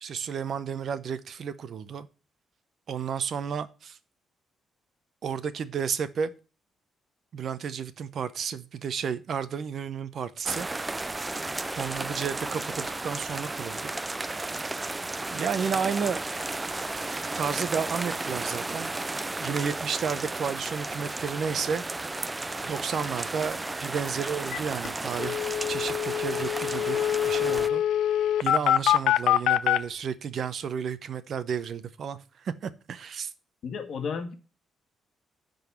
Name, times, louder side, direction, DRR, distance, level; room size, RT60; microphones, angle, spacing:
voice 1, 0.0-2.1 2.9-4.0 5.2-6.3 7.3-10.7 11.8-13.9 15.3-16.2 17.4-18.9 19.4-21.8 22.6-25.4 25.7-27.0 27.3-27.8 28.4-33.3, right 7 dB, 50° right, 0.7 m, -32 dB
sound 1, 10.4-27.7, right 2 dB, 15° right, 0.4 m, -33 dB
sound 2, 24.5-24.6 24.9-25.0 25.2-29.8, left 11 dB, 85° left, 0.4 m, -24 dB
voice 2, 33.6-34.4, left 5 dB, 55° left, 1.5 m, -33 dB
10.5 x 3.9 x 7.0 m
cardioid pair, 160°, 0 cm